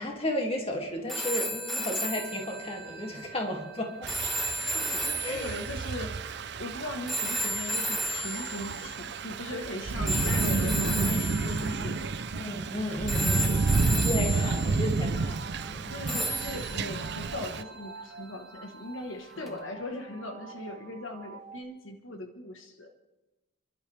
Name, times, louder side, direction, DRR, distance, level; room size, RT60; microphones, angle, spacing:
voice 1, 0.0-4.1 5.2-5.5 10.8-11.0 11.8-15.4 15.7-16.0 19.4-19.6, left 1 dB, 30° left, 1 dB, 2.5 m, -34 dB
sound 1, 1.1-9.3 10.1-12.8 13.1-15.2 16.1-18.3 19.5-19.6, equal, ahead, 1.3 m, -34 dB
Thunder / Rain, 4.0-17.6, right 3 dB, 55° right, 0.5 m, -30 dB
voice 2, 4.7-6.2 6.6-12.2 14.2-14.3 15.9-22.9, left 1 dB, 70° left, 4 dB, 1.3 m, -39 dB
sound 2, 13.2-21.6, right 4 dB, 85° right, 2.6 m, -47 dB
30.0 x 12.0 x 3.4 m, 1.1 s
head